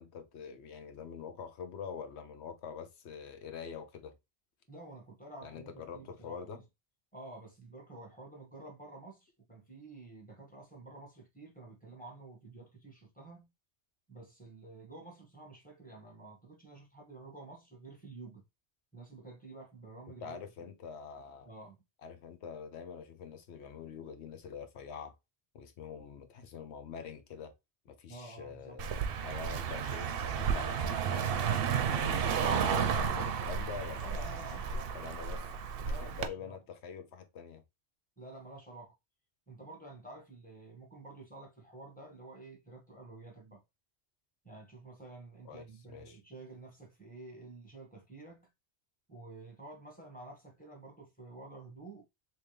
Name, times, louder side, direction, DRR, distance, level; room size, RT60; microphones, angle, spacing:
voice 1, 0.0-4.1 5.4-6.6 20.1-21.5 22.0-25.1 25.5-27.5 27.8-34.6 34.9-35.5 36.0-37.6 45.5-46.2, left 6 dB, 90° left, 1.0 m, -45 dB
voice 2, 4.7-6.4 7.1-13.5 14.1-18.4 18.9-20.4 21.4-21.8 28.1-28.8 34.0-35.0 35.8-36.6 38.2-38.9 39.5-43.6 44.4-48.5 49.1-52.0, right 2 dB, 10° left, 1.4 m, -50 dB
Car passing by, 28.8-36.3, right 7 dB, 65° right, 0.7 m, -32 dB
3.5 x 3.0 x 3.1 m
omnidirectional pair, 1.1 m